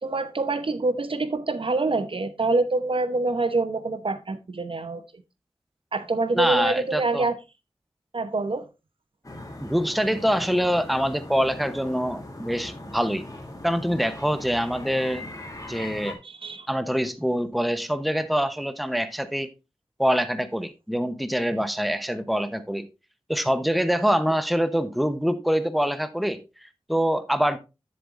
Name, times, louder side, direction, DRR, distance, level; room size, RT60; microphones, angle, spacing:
voice 1, 0.0-5.2 5.9-7.3 8.1-8.7 16.2-16.7, right 3 dB, 60° right, 0.9 m, -26 dB
voice 2, 6.3-7.3 9.6-13.2 13.6-15.3 15.7-16.2 16.7-19.5 20.0-22.9 23.3-27.6, equal, ahead, 0.9 m, -25 dB
sound 1, 9.2-16.1, left 1 dB, 35° left, 2.9 m, -40 dB
10.0 x 7.5 x 2.5 m
wide cardioid pair, 50°, 10 cm